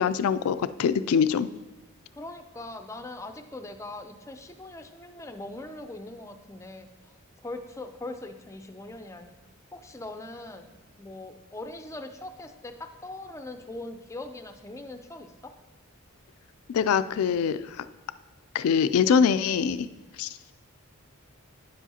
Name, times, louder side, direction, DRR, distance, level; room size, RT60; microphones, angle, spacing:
voice 1, 0.0-1.5 16.7-17.6 18.5-19.9 20.2-20.3, left 7 dB, 85° left, 14 dB, 0.3 m, -23 dB
voice 2, 2.1-7.1 7.4-9.4 9.7-10.7 11.0-15.5, left 2 dB, 15° left, 7 dB, 0.4 m, -41 dB
9.8 x 7.2 x 2.8 m, 1.1 s
head